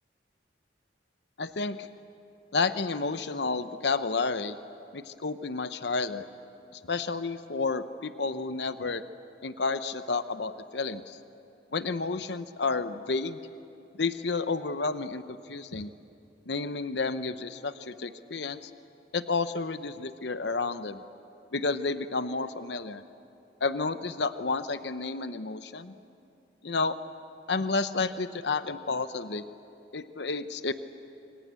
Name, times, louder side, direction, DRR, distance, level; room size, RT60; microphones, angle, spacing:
voice 1, 1.4-1.9 2.5-4.6 4.9-6.2 6.7-9.0 9.4-11.2 11.7-13.4 13.9-15.9 16.5-18.7 19.1-21.0 21.5-23.0 23.6-25.9 26.6-27.0 27.5-29.4 29.9-30.7, left 4 dB, 65° left, 11 dB, 0.9 m, -31 dB
28.5 x 25.0 x 8.3 m, 2.7 s
head